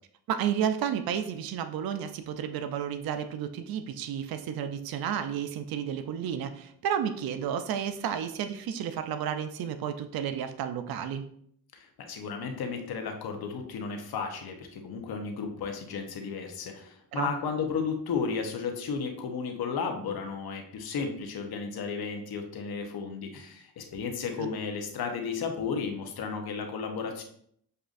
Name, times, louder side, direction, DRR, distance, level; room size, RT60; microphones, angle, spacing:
voice 1, 0.3-11.2 17.1-17.3 24.4-24.5, right 8 dB, 70° right, 9 dB, 0.5 m, -32 dB
voice 2, 11.7-27.2, left 5 dB, 75° left, 4 dB, 0.9 m, -34 dB
6.6 x 2.5 x 2.5 m, 0.66 s
cardioid pair, 80°, 38 cm